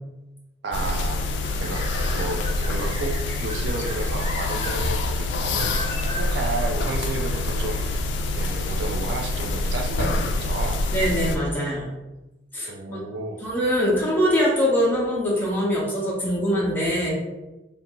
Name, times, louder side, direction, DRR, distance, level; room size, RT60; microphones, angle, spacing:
voice 1, 0.6-1.2 1.6-1.8 2.1-5.7 6.2-7.8 8.4-10.8 12.7-13.5, right 3 dB, 65° right, 3 dB, 0.3 m, -32 dB
sound 1, 0.7-11.4, left 2 dB, 75° left, 0.3 m, -26 dB
sound 2, 1.4-4.7 5.1-5.2 5.5-6.3, equal, 30° right, 1.0 m, -37 dB
voice 2, 10.9-11.9 12.5-13.0 13.4-17.1, equal, 10° left, -6 dB, 0.7 m, -23 dB
2.5 x 2.3 x 2.7 m, 1.0 s
head